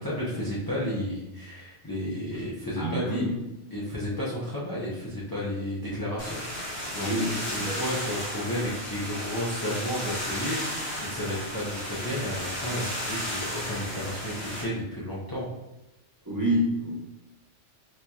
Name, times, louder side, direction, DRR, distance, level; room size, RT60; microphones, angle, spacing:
voice 1, 0.0-3.2 3.7-15.4, equal, 25° left, -8 dB, 0.5 m, -32 dB
voice 2, 2.8-3.3 7.0-7.3 7.6-7.8 16.2-16.9, equal, 15° right, -8 dB, 1.1 m, -27 dB
sound 1, 6.2-14.6, equal, 60° left, 1.4 m, -34 dB
4.6 x 2.8 x 2.3 m, 0.95 s
omnidirectional pair, 1.2 m